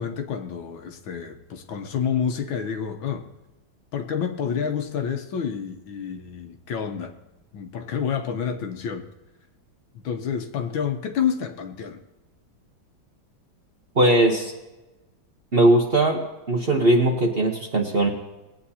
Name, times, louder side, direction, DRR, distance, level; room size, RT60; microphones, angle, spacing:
voice 1, 0.0-3.3 3.9-7.1 7.5-9.1 10.0-12.0, left 7 dB, 80° left, 6 dB, 1.8 m, -28 dB
voice 2, 14.0-14.5 15.5-18.1, right 1 dB, 40° right, 1 dB, 1.0 m, -19 dB
18.5 x 9.3 x 2.8 m, 1.1 s
omnidirectional pair, 2.2 m